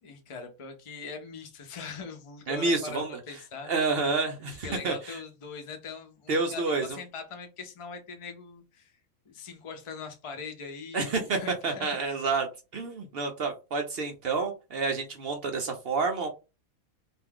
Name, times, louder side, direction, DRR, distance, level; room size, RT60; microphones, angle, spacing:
voice 1, 0.0-3.7 4.5-9.0 9.3-12.2, left 5 dB, 45° left, 4 dB, 0.4 m, -42 dB
voice 2, 2.5-3.2 3.7-5.2 6.3-6.9 10.9-11.4 11.6-12.5 12.7-16.3, right 4 dB, 65° right, 4 dB, 0.6 m, -29 dB
2.5 x 2.3 x 3.4 m, 0.28 s
omnidirectional pair, 1.5 m